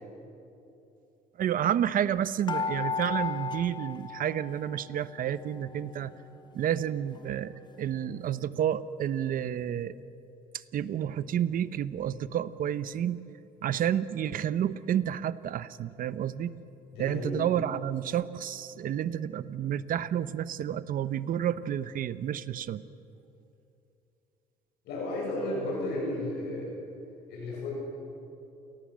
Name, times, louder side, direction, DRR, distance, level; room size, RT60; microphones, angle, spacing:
voice 1, 1.4-6.1 6.5-9.9 10.5-13.2 13.6-16.5 17.0-22.8, right 10 dB, 55° right, 14 dB, 0.9 m, -30 dB
sound 1, 2.5-5.0 5.3-6.3 6.8-6.9 7.1-7.3, left 5 dB, 25° left, 0.8 m, -35 dB
voice 2, 16.9-17.3 24.8-26.7 27.3-27.7, left 1 dB, 85° left, -3 dB, 7.9 m, -33 dB
28.5 x 18.5 x 7.6 m, 2.7 s
cardioid pair, 110°, 17 cm